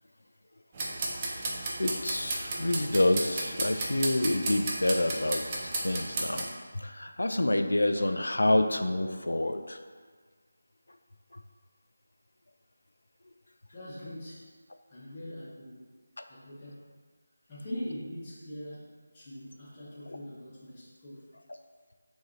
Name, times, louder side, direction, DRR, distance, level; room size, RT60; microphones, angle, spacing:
sound 1, 0.7-6.4, right 2 dB, 25° right, 0.5 m, -34 dB
voice 1, 1.8-6.5 6.7-9.8 11.3-11.4 16.2-16.3 20.1-20.2, left 1 dB, 80° left, 7 dB, 0.3 m, -28 dB
voice 2, 13.7-14.5 14.9-15.9 16.3-16.9 17.5-21.3, left 1 dB, 25° left, -9 dB, 1.1 m, -42 dB
4.7 x 2.7 x 3.0 m, 1.5 s
figure-of-eight pair, 165°, 0 cm